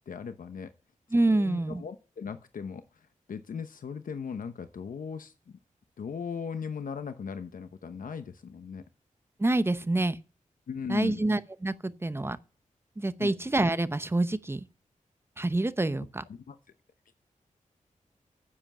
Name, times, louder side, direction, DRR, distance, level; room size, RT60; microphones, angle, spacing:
voice 1, 0.1-0.7 1.3-5.6 6.0-8.8 10.7-11.2 13.2-13.3 16.3-16.6, left 6 dB, 85° left, 0.9 m, -38 dB
voice 2, 1.1-1.8 9.4-10.2 10.9-12.4 13.0-14.7 15.4-16.2, right 2 dB, 15° right, 0.8 m, -27 dB
9.8 x 7.8 x 7.1 m
wide cardioid pair, 115°, 14 cm